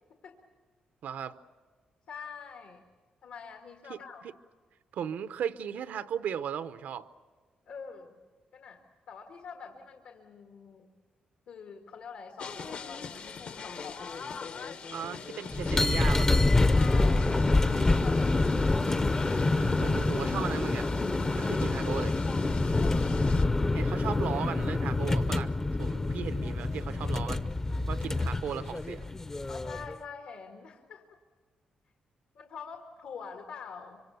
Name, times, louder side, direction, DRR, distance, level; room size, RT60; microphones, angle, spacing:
voice 1, 1.0-1.4 3.9-4.0 4.9-7.1 14.9-16.4 19.5-20.9 21.3-22.1 23.7-25.5 25.8-27.5 27.9-29.1, right 8 dB, 80° right, 12 dB, 0.8 m, -36 dB
voice 2, 2.1-2.8 3.2-4.2 7.7-8.2 8.5-10.9 11.5-14.2 16.7-19.6 22.7-23.5 29.5-31.2 32.4-34.0, left 6 dB, 75° left, 3 dB, 1.8 m, -46 dB
sound 1, 12.4-23.4, left 5 dB, 55° left, 1.0 m, -43 dB
sound 2, 15.5-29.9, left 2 dB, 20° left, 0.6 m, -27 dB
25.5 x 25.0 x 6.9 m, 1.5 s
wide cardioid pair, 150°, 3 cm